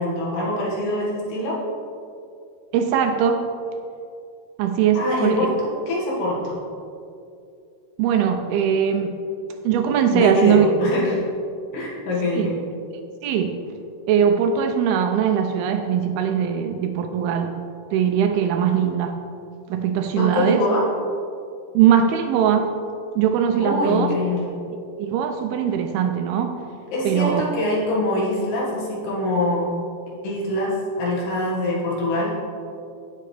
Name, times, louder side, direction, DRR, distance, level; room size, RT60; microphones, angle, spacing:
voice 1, 0.0-1.6 5.0-5.5 5.9-6.6 10.1-11.2 11.7-12.6 20.1-20.9 23.6-24.5 26.9-29.7 30.2-32.3, left 1 dB, 85° left, -4 dB, 4.0 m, -23 dB
voice 2, 2.7-3.5 4.6-5.5 8.0-9.2 9.6-10.7 12.4-12.5 13.2-13.6 14.1-17.6 17.9-19.2 19.7-20.6 21.7-22.7 23.2-24.1 25.0-26.6 27.1-27.4, right 8 dB, 80° right, 6 dB, 2.4 m, -20 dB
16.5 x 5.6 x 3.3 m, 2.5 s
omnidirectional pair, 4.6 m